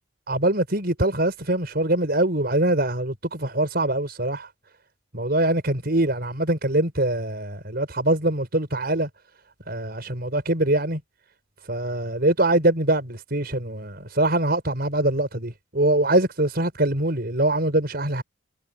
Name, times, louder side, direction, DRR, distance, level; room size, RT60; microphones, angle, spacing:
voice 1, 0.3-4.5 5.1-9.1 9.7-11.0 11.7-18.2, right 1 dB, 50° right, 5.5 m, -23 dB
head